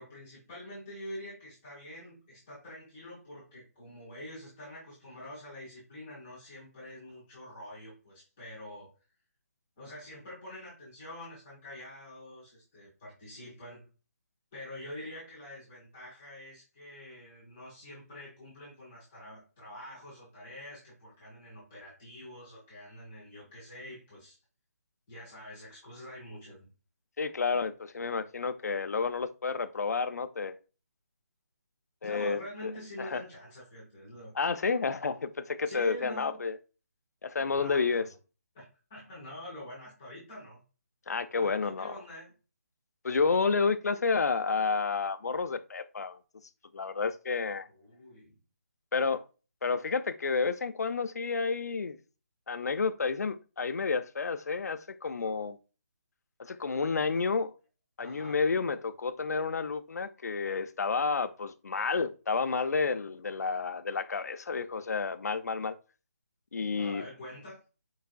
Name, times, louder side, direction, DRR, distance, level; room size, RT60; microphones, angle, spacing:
voice 1, 0.0-8.9 9.8-13.9 14.5-24.4 25.1-26.7 32.0-34.3 35.6-36.4 37.6-38.1 38.5-38.6 38.9-40.6 41.4-42.3 47.7-48.4 58.0-58.4 66.8-67.6, left 1 dB, 5° left, 0.3 m, -46 dB
voice 2, 27.2-30.6 32.0-32.7 33.0-33.2 34.4-36.6 37.2-38.0 41.1-42.0 43.0-46.2 46.7-47.7 48.9-49.2 49.6-52.0 52.5-55.6 56.4-57.5 58.0-65.7 66.5-67.0, left 4 dB, 75° left, 0.4 m, -30 dB
4.7 x 2.6 x 2.3 m
hypercardioid pair, 180°, 9 cm